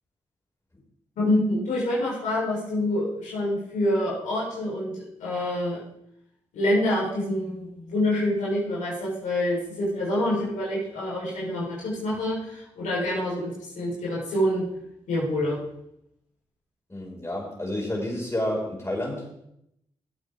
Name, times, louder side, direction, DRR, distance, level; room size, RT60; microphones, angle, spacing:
voice 1, 1.2-5.8 6.5-14.7 15.1-15.6, left 1 dB, 90° left, -6 dB, 4.2 m, -26 dB
voice 2, 16.9-19.3, left 1 dB, 20° left, -2 dB, 5.6 m, -30 dB
15.5 x 8.3 x 3.7 m, 0.78 s
supercardioid pair, 45°, 12 cm